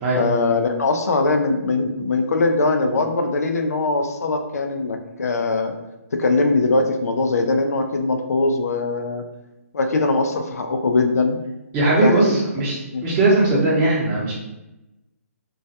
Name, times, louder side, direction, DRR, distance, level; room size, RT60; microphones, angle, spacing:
voice 1, 0.2-5.7 6.1-9.2 9.7-11.4 12.0-12.4 12.9-13.0, left 3 dB, 85° left, 4 dB, 0.4 m, -21 dB
voice 2, 11.7-14.3, right 2 dB, 25° right, -6 dB, 0.8 m, -19 dB
2.3 x 2.1 x 2.7 m, 0.97 s
hypercardioid pair, 150°, 8 cm